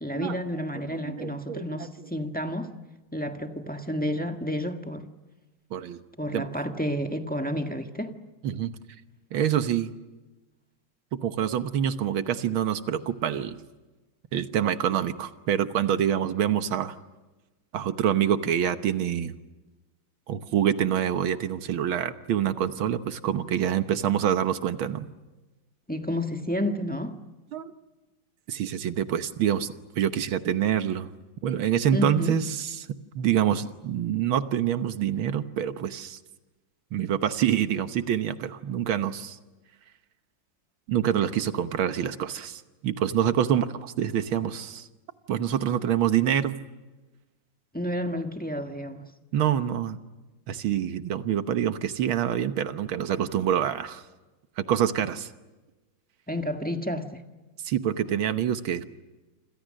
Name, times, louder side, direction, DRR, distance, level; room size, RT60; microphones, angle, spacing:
voice 1, 0.0-2.7 3.1-5.0 6.2-8.1 25.9-27.2 31.9-32.3 47.7-49.1 56.3-57.2, equal, 5° left, 1.3 m, -30 dB
voice 2, 0.7-2.1 5.7-6.0 6.3-6.5 8.4-8.7 9.3-9.9 11.1-13.6 14.3-17.0 17.7-19.3 20.3-25.1 27.5-27.7 28.5-31.1 31.4-36.2 36.9-39.4 40.9-44.9 45.3-46.6 49.3-50.0 50.5-54.0 54.6-55.3 57.6-58.8, right 9 dB, 85° right, 1.9 m, -26 dB
28.0 x 26.5 x 6.5 m
omnidirectional pair, 2.2 m